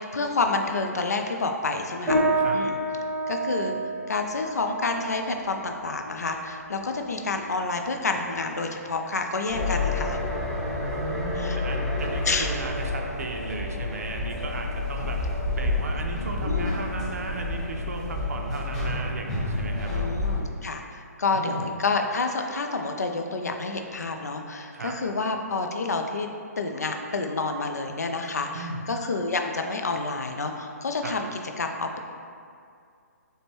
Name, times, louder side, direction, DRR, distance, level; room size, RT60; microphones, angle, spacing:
voice 1, 0.0-2.2 2.5-2.7 3.3-3.8 4.1-10.2 11.4-11.6 12.3-12.5 16.5-16.8 19.9-26.3 26.6-32.0, left 3 dB, 70° left, 4 dB, 0.4 m, -29 dB
sound 1, 2.1-11.7, right 1 dB, 15° right, 1.3 m, -31 dB
sound 2, 9.5-20.4, left 2 dB, 5° left, 1.0 m, -29 dB
voice 2, 10.7-15.2 15.5-20.2 21.3-21.7 24.7-25.0 28.5-28.8 31.0-31.2, right 3 dB, 60° right, 2 dB, 0.5 m, -35 dB
4.9 x 2.1 x 3.0 m, 2.3 s
figure-of-eight pair, 130°, 9 cm